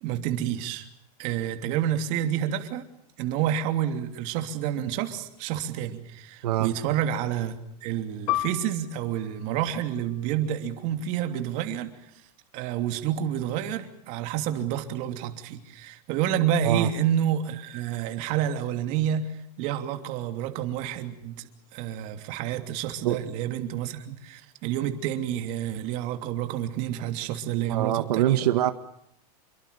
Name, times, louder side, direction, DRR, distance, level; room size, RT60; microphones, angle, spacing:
voice 1, 0.0-0.9 1.2-2.9 3.2-11.9 12.5-28.4, right 10 dB, 40° right, 6 dB, 3.0 m, -29 dB
Piano, 8.3-13.3 13.7-13.8 14.6-15.0, left 17 dB, 55° left, 1.4 m, -36 dB
voice 2, 27.7-28.7, right 13 dB, 75° right, 8 dB, 1.7 m, -24 dB
28.0 x 23.5 x 6.9 m, 0.78 s
supercardioid pair, 165°, 20 cm